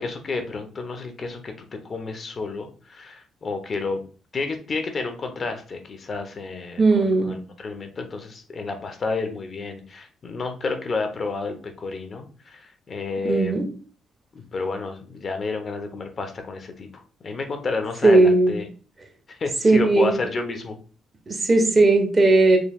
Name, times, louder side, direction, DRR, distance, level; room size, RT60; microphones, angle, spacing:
voice 1, 0.0-1.5 1.8-4.0 4.3-13.6 14.3-18.6 19.3-20.8, left 3 dB, 45° left, 6 dB, 0.9 m, -30 dB
voice 2, 6.8-7.3 13.2-13.7 18.0-18.5 19.6-20.1 21.3-22.6, right 2 dB, 30° right, 3 dB, 1.1 m, -17 dB
4.7 x 3.2 x 2.3 m, 0.39 s
cardioid pair, 90°, 0 cm